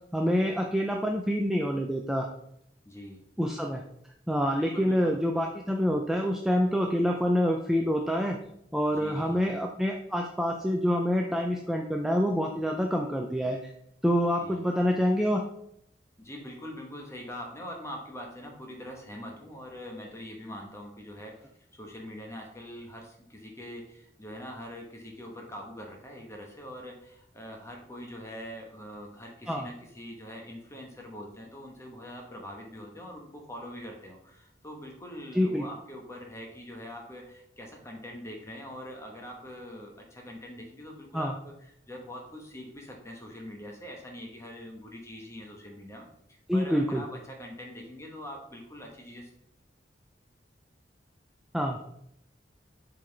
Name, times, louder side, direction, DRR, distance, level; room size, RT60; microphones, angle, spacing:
voice 1, 0.1-2.3 3.4-3.8 4.3-8.4 8.7-13.7 14.0-15.4 29.5-29.7 35.3-35.6 41.1-41.3 46.5-47.0 51.5-51.8, equal, 5° right, 1 dB, 0.4 m, -27 dB
voice 2, 2.8-3.2 4.6-5.1 8.9-9.5 14.4-14.6 16.2-21.3 21.7-49.3, equal, 15° left, 1 dB, 1.1 m, -43 dB
7.5 x 3.9 x 3.2 m, 0.74 s
head